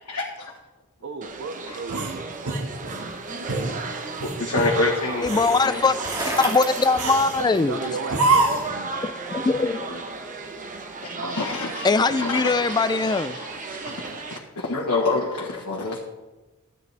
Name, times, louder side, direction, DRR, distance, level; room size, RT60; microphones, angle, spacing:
voice 1, 0.1-0.5 1.7-1.8 4.4-5.8 9.9-10.0 11.0-11.9 12.2-12.5 13.3-14.0 14.3-16.0, left 3 dB, 80° left, -3 dB, 1.4 m, -27 dB
voice 2, 1.0-2.4 7.4-8.9 11.1-11.4, right 4 dB, 55° right, 8 dB, 0.6 m, -34 dB
sound 1, 1.2-14.4, right 4 dB, 35° right, 0.9 m, -34 dB
sound 2, 1.9-3.1 3.5-3.7 4.2-4.7 5.2-5.7 6.1-6.4 7.0-7.5 8.1-8.8, right 3 dB, 70° right, 1.6 m, -25 dB
Bicycle, 3.5-8.0, right 1 dB, 15° right, 1.8 m, -34 dB
voice 3, 5.2-6.0 6.3-7.9 9.0-9.9 11.8-13.4, left 4 dB, 20° left, 13 dB, 0.3 m, -21 dB
13.5 x 9.1 x 3.4 m, 1.1 s
head